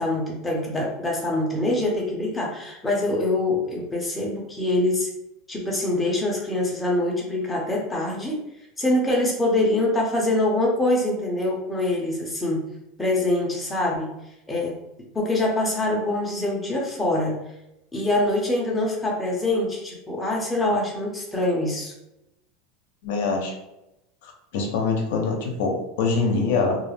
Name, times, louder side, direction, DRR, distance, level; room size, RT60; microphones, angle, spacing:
voice 1, 0.0-5.1 5.5-8.4 8.8-12.6 13.0-14.1 14.5-14.7 15.1-17.4 17.9-21.9, left 1 dB, 5° left, -3 dB, 0.6 m, -24 dB
voice 2, 23.0-23.5 24.2-26.8, left 4 dB, 75° left, 1 dB, 0.6 m, -24 dB
2.3 x 2.1 x 3.2 m, 0.90 s
supercardioid pair, 155°, 0 cm